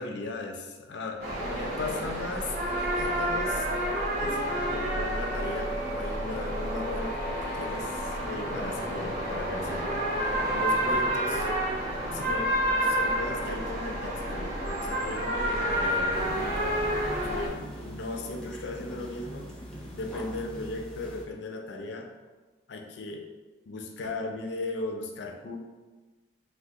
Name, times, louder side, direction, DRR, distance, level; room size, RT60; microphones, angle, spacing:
voice 1, 0.0-2.6 3.0-3.7 4.2-10.0 10.5-11.5 12.1-12.5 12.8-19.5 19.9-22.1 22.7-23.3 23.7-25.6, left 2 dB, 65° left, 3 dB, 0.4 m, -37 dB
sound 1, 1.2-17.5, right 1 dB, 50° right, 0.9 m, -29 dB
sound 2, 16.1-21.2, equal, 5° left, 0.5 m, -42 dB
2.6 x 2.1 x 3.6 m, 1.2 s
head